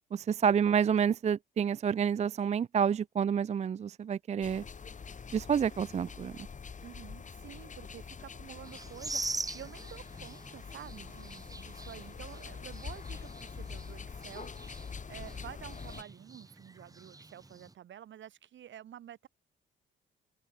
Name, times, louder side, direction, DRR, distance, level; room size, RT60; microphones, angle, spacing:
voice 1, 0.1-4.6 5.3-6.4, right 7 dB, 35° right, 0.5 m, -29 dB
sound 1, 4.4-16.0, left 5 dB, 40° left, 5.3 m, -45 dB
voice 2, 6.8-14.8 15.1-19.3, right 11 dB, 70° right, 6.8 m, -50 dB
sound 2, 8.6-17.7, right 3 dB, 20° right, 2.8 m, -44 dB
cardioid pair, 90°, 20 cm